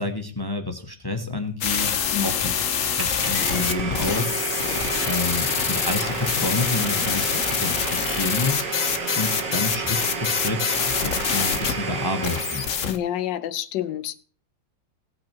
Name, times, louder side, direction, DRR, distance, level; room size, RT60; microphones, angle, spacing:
voice 1, 0.0-1.9 2.2-4.3 5.0-7.3 7.6-8.9 9.1-12.6, left 2 dB, 15° left, 5 dB, 0.9 m, -29 dB
sound 1, 1.6-11.7 12.2-13.0, left 8 dB, 55° left, 1.1 m, -25 dB
Domestic sounds home sounds, 3.0-13.0, right 4 dB, 90° right, 2.2 m, -30 dB
voice 2, 12.8-14.1, left 11 dB, 90° left, 11 dB, 1.4 m, -28 dB
18.0 x 6.1 x 4.5 m, 0.41 s
omnidirectional pair, 1.9 m